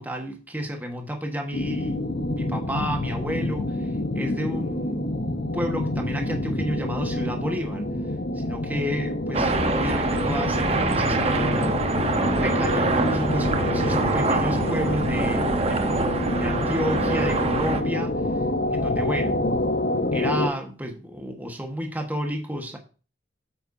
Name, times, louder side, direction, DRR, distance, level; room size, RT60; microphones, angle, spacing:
voice 1, 0.0-2.0 2.3-5.1 5.5-7.9 8.4-11.8 12.3-18.2 18.7-19.5 20.1-22.8, equal, 10° right, 3 dB, 1.3 m, -31 dB
sound 1, 1.5-20.5, left 1 dB, 55° left, 0.8 m, -27 dB
sound 2, 9.3-17.8, right 3 dB, 35° right, 0.9 m, -25 dB
8.8 x 8.0 x 2.7 m, 0.35 s
head